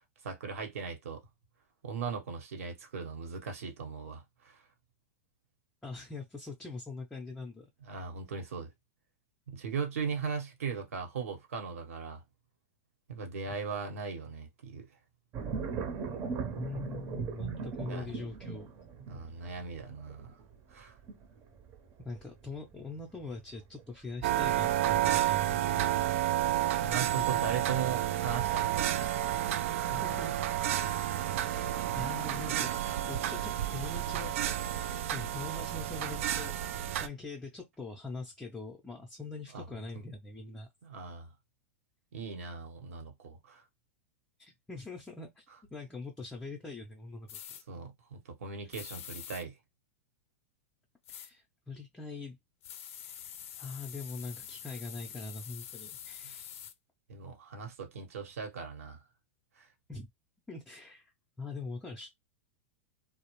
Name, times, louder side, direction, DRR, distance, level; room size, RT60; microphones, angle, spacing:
voice 1, 0.2-1.2 1.8-4.6 7.9-8.7 9.5-12.2 13.1-14.9 17.8-18.1 19.1-20.4 20.7-20.9 25.8-26.0 26.8-29.1 39.5-39.9 40.8-41.3 42.1-43.6 47.7-49.5 57.1-59.0 59.6-59.7, right 6 dB, 80° right, 1.0 m, -38 dB
voice 2, 5.8-7.7 13.5-13.6 16.6-18.7 22.0-26.2 27.2-27.5 29.9-30.5 31.4-32.7 33.1-34.4 34.7-36.5 37.0-40.7 44.4-45.4 45.7-47.4 51.1-52.4 53.0-53.1 53.6-56.5 59.9-60.1 60.5-62.1, left 3 dB, 10° left, 0.6 m, -43 dB
sound 1, 15.3-25.0 25.4-25.9, right 6 dB, 40° right, 0.8 m, -40 dB
sound 2, 24.2-37.1, right 12 dB, 65° right, 0.4 m, -30 dB
sound 3, 47.3-47.6 48.7-49.4 51.1-51.3 52.6-56.7, left 9 dB, 75° left, 0.4 m, -46 dB
2.4 x 2.0 x 3.0 m
hypercardioid pair, 125°, 8 cm